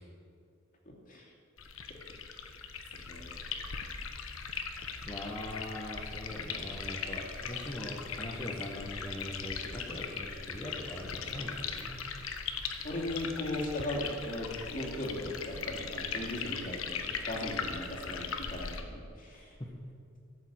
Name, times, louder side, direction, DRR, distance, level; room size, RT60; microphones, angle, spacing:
sound 1, 1.6-18.8, left 5 dB, 75° left, 1.2 m, -39 dB
voice 1, 3.1-3.4 12.8-19.5, left 1 dB, 40° left, -2 dB, 2.8 m, -38 dB
voice 2, 5.0-12.0 19.6-19.7, left 1 dB, 20° left, -3 dB, 1.4 m, -41 dB
14.0 x 7.1 x 8.7 m, 2.5 s
head